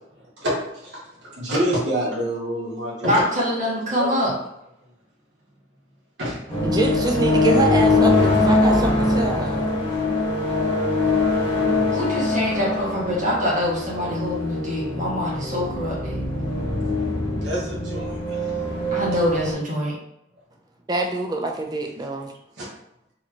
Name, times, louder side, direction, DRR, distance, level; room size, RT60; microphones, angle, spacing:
voice 1, 0.4-3.1 3.5-4.3 6.2-6.4 17.4-18.5 22.6-22.7, equal, 60° right, -6 dB, 1.2 m, -28 dB
voice 2, 3.1-4.3 11.9-16.2 18.9-19.9, equal, 40° right, -6 dB, 1.5 m, -24 dB
sound 1, 6.5-19.5, left 2 dB, 30° left, 1.2 m, -22 dB
voice 3, 6.6-9.7 20.9-22.3, right 2 dB, 20° right, 3 dB, 0.5 m, -25 dB
4.1 x 3.1 x 3.0 m, 0.80 s
head